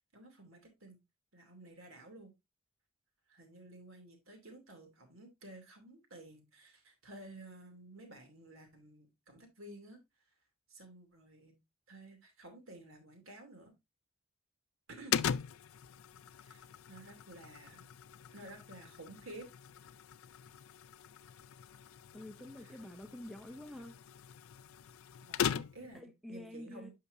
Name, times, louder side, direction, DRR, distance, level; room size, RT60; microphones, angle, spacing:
voice 1, 0.1-1.0 1.3-2.3 3.3-10.0 10.7-11.6 11.9-13.7 14.9-15.2 16.4-17.9 18.3-19.5 22.6-22.8 25.2-26.9, right 1 dB, 70° right, 2.7 m, -53 dB
sound 1, 15.1-26.0, left 8 dB, 75° left, 0.4 m, -41 dB
voice 2, 22.1-24.0 25.9-26.9, left 1 dB, ahead, 0.5 m, -48 dB
8.2 x 5.9 x 2.6 m
head